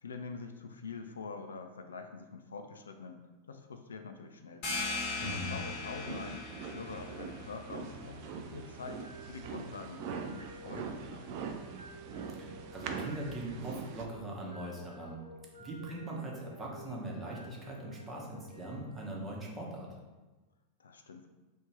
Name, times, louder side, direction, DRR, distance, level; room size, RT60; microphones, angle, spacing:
voice 1, 0.0-3.2 3.5-4.7 5.2-6.5 6.7-11.5 20.8-21.3, left 4 dB, 70° left, 6 dB, 0.3 m, -45 dB
sound 1, 4.6-10.0, left 3 dB, 45° left, 1.1 m, -40 dB
voice 2, 5.2-5.5 12.3-15.2 15.6-19.9, right 1 dB, 20° right, -2 dB, 1.0 m, -41 dB
sound 2, 5.3-14.1, right 5 dB, 45° right, 0.3 m, -43 dB
sound 3, 7.8-19.9, equal, 70° right, 0.9 m, -54 dB
3.1 x 2.8 x 4.4 m, 1.2 s
figure-of-eight pair, 90°, 0 cm